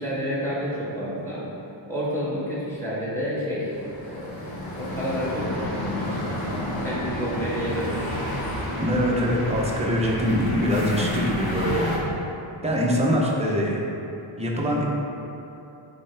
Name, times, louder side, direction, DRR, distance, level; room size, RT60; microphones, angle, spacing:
voice 1, 0.0-1.5 1.9-6.2 6.8-8.2, equal, 5° left, -8 dB, 1.5 m, -30 dB
sound 1, 3.7-12.0, left 1 dB, 45° left, 1.3 m, -30 dB
voice 2, 8.8-11.9 12.6-13.8 14.4-14.8, equal, 15° right, -3 dB, 0.8 m, -23 dB
9.9 x 3.8 x 3.4 m, 2.9 s
wide cardioid pair, 165°, 50 cm